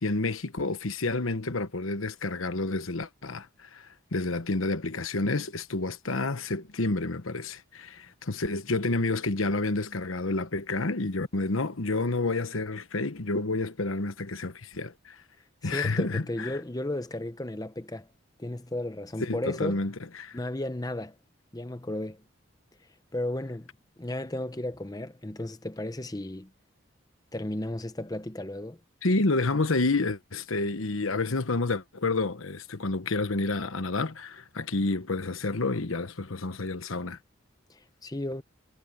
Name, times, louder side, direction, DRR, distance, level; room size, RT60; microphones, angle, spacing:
voice 1, 0.0-15.2 15.6-16.6 19.2-20.4 29.0-37.2, left 3 dB, 90° left, 1.2 m, -29 dB
voice 2, 15.6-18.1 18.4-19.9 20.3-21.2 21.5-22.2 23.1-23.7 24.0-26.5 27.3-28.8 37.7-38.4, left 1 dB, 20° left, 0.8 m, -34 dB
head